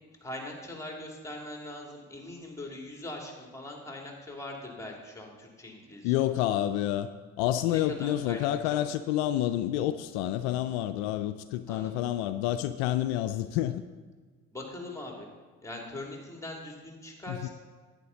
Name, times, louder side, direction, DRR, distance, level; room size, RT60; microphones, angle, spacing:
voice 1, 0.2-6.2 7.7-8.9 11.7-11.9 14.5-15.3 15.6-17.5, left 1 dB, 10° left, 0 dB, 2.8 m, -41 dB
voice 2, 6.0-7.1 7.4-13.8 17.3-17.5, left 12 dB, 80° left, 11 dB, 0.5 m, -29 dB
11.0 x 9.3 x 4.0 m, 1.4 s
hypercardioid pair, 50°, 34 cm